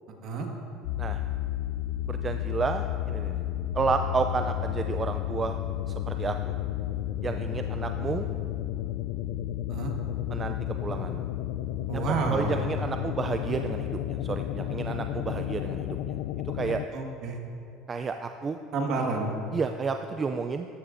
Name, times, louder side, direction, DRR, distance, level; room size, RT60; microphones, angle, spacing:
sound 1, 0.8-16.9, left 12 dB, 75° left, 0.3 m, -32 dB
voice 1, 2.1-3.4 3.7-5.6 5.9-6.5 7.2-8.3 10.3-10.5 10.8-11.2 11.9-16.2 16.5-16.8 17.9-18.6 19.5-20.7, right 5 dB, 25° right, 7 dB, 0.3 m, -31 dB
voice 2, 11.9-12.6 16.9-17.4 18.7-19.3, right 4 dB, 50° right, 1 dB, 1.6 m, -29 dB
14.0 x 12.0 x 2.6 m, 2.6 s
supercardioid pair, 130°, 0 cm